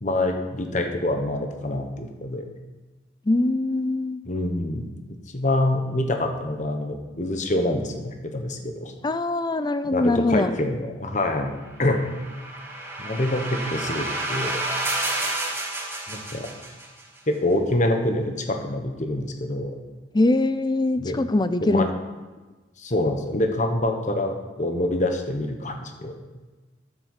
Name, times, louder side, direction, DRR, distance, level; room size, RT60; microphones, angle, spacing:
voice 1, 0.0-2.4 4.3-5.0 5.3-8.9 9.8-12.0 13.0-14.6 16.1-16.5 17.3-19.7 21.0-21.2 21.6-21.9 22.8-26.2, left 1 dB, 40° left, 5 dB, 1.2 m, -26 dB
voice 2, 3.3-4.2 9.0-10.5 20.1-21.9, left 2 dB, 20° left, 12 dB, 0.4 m, -22 dB
sound 1, 11.7-17.0, right 2 dB, 10° right, 1.5 m, -30 dB
9.7 x 7.7 x 7.4 m, 1.2 s
head